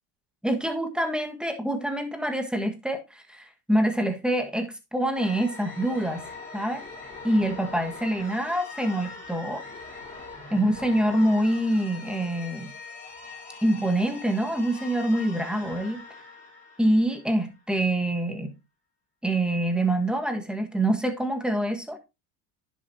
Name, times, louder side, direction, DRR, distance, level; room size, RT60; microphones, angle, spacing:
voice 1, 0.4-6.2 6.5-6.8 7.2-9.6 10.5-12.7 13.6-16.0 16.8-18.5 19.2-22.0, right 1 dB, ahead, 1.5 m, -25 dB
sound 1, 5.1-17.7, left 4 dB, 15° left, 6.2 m, -42 dB
10.0 x 7.3 x 2.8 m
supercardioid pair, 110°, 48 cm